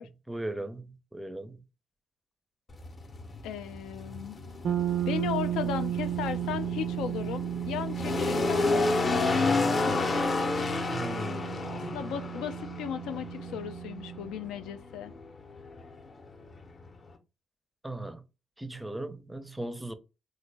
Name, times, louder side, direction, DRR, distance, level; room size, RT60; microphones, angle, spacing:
voice 1, 0.3-1.6 10.9-12.0 17.8-18.2 18.6-19.9, right 1 dB, 10° right, 0.4 m, -38 dB
sound 1, 2.7-17.2, left 3 dB, 35° left, 0.6 m, -31 dB
voice 2, 3.4-4.4 5.1-9.6 11.6-15.1, left 9 dB, 90° left, 0.3 m, -36 dB
sound 2, 4.6-14.4, right 11 dB, 70° right, 0.4 m, -34 dB
3.1 x 2.1 x 3.2 m
cardioid pair, 90°, 0 cm